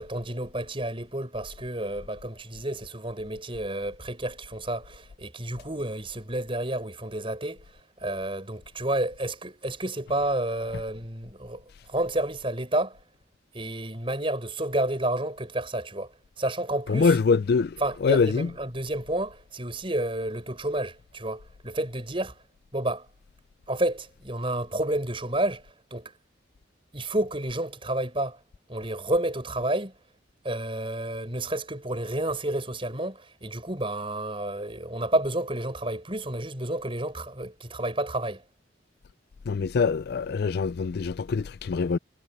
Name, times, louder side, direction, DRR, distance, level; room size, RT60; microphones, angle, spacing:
voice 1, 0.0-7.6 8.0-11.6 11.9-13.0 13.5-16.1 16.4-17.2 17.8-22.4 22.7-23.1 23.7-26.1 26.9-28.4 28.7-29.9 30.4-38.4, right 1 dB, 25° right, 5.9 m, -30 dB
voice 2, 16.9-17.7 18.0-18.5 39.5-42.0, left 5 dB, 55° left, 0.3 m, -24 dB
head